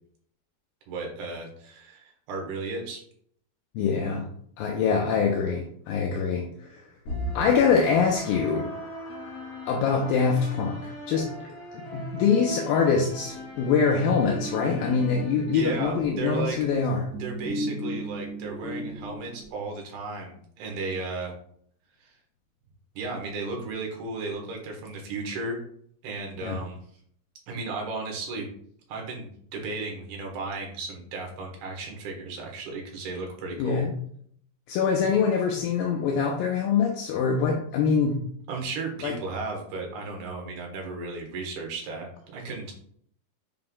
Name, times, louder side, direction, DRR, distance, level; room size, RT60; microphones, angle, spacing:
voice 1, 0.9-3.0 15.5-16.6 17.2-21.3 22.0-22.2 22.9-25.6 26.0-26.8 27.5-28.5 28.9-33.8 38.5-42.7, right 3 dB, 75° right, 1 dB, 3.5 m, -34 dB
voice 2, 3.8-4.3 4.6-6.8 7.4-8.7 9.7-11.3 11.7-17.1 26.4-26.6 33.6-33.9 34.7-38.2 39.0-39.2, left 6 dB, 80° left, 1 dB, 2.3 m, -24 dB
sound 1, 7.1-16.0, equal, 45° left, 4.0 m, -38 dB
sound 2, 12.8-19.5, right 1 dB, 55° right, 3.0 m, -37 dB
7.7 x 5.7 x 2.4 m, 0.63 s
omnidirectional pair, 4.5 m